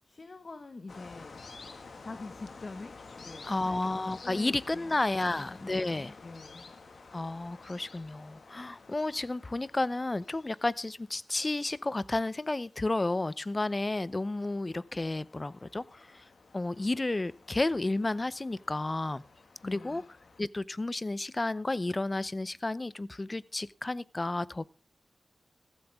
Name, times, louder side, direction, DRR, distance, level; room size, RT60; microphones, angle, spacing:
voice 1, 0.0-1.4 2.0-3.9 4.2-5.0 5.3-6.7 19.6-20.0, left 3 dB, 55° left, 1.5 m, -45 dB
sound 1, 0.9-20.4, left 4 dB, 70° left, 1.8 m, -52 dB
voice 2, 3.4-6.1 7.1-16.2 16.5-19.2 19.6-20.0 20.4-24.7, left 2 dB, 35° left, 0.6 m, -32 dB
15.0 x 14.5 x 3.6 m
cardioid pair, 65°, 0 cm